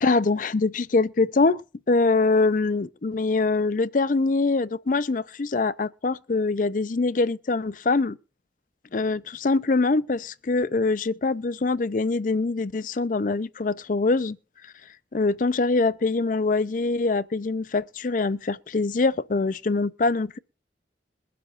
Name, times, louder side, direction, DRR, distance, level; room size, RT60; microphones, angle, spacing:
voice 1, 0.0-1.6 1.9-8.2 8.9-14.4 15.1-20.4, left 3 dB, 45° left, 0.5 m, -24 dB
22.5 x 7.6 x 2.5 m
head